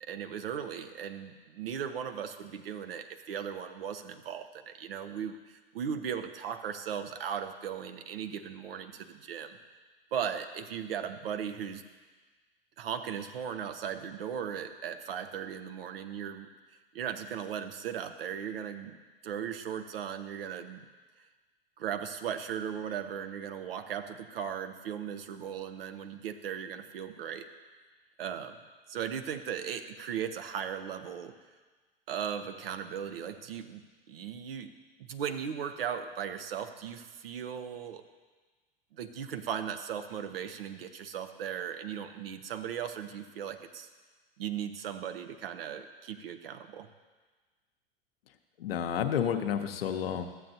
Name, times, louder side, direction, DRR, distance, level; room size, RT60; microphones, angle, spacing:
voice 1, 0.1-9.6 10.1-11.8 12.8-16.5 16.9-19.0 19.2-20.8 21.8-27.5 28.2-28.6 28.9-31.3 32.1-34.7 35.0-38.0 38.9-43.9 44.4-46.9, right 8 dB, 75° right, 8 dB, 0.8 m, -37 dB
voice 2, 48.6-50.2, left 8 dB, 75° left, 6 dB, 0.8 m, -30 dB
14.0 x 7.6 x 2.7 m, 1.3 s
hypercardioid pair, 90°, 30 cm